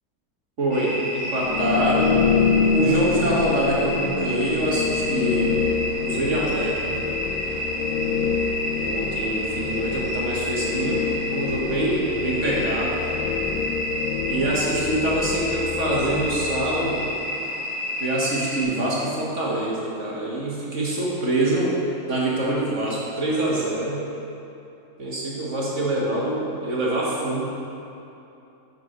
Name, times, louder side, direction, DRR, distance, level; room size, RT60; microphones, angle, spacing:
voice 1, 0.6-2.2 2.7-5.5 6.0-7.0 8.8-11.1 11.3-13.0 14.3-17.1 18.0-21.8 22.1-24.0 25.0-27.4, right 1 dB, 50° right, -5 dB, 1.7 m, -25 dB
sound 1, 0.7-18.6, equal, 20° right, 1.5 m, -30 dB
sound 2, 1.4-17.2, left 6 dB, 80° left, 1.1 m, -26 dB
9.2 x 4.5 x 5.0 m, 2.8 s
omnidirectional pair, 1.7 m